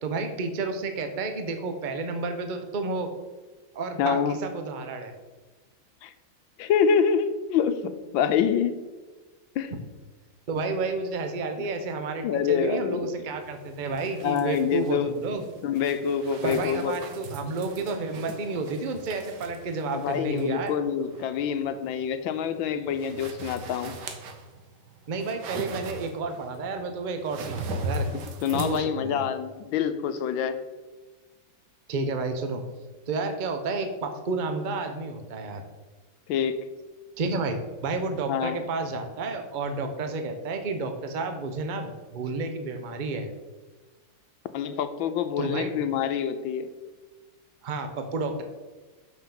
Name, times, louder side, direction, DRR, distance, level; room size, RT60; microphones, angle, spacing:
voice 1, 0.0-3.1 3.7-5.1 9.7-9.8 10.5-15.5 16.4-20.8 25.1-28.1 28.5-29.3 31.9-32.6 33.1-35.6 37.2-43.3 45.4-45.9 47.6-48.4, right 3 dB, 45° right, 6 dB, 0.6 m, -31 dB
voice 2, 4.0-4.4 6.0-6.1 6.6-8.8 9.6-9.7 12.2-13.2 14.2-15.2 15.6-17.0 19.9-24.0 28.1-30.6 36.3-36.6 38.3-38.6 44.5-46.7, left 7 dB, 80° left, 10 dB, 1.4 m, -26 dB
sound 1, 13.4-28.8, right 2 dB, 65° right, 1.5 m, -39 dB
6.1 x 5.9 x 6.9 m, 1.3 s
omnidirectional pair, 2.1 m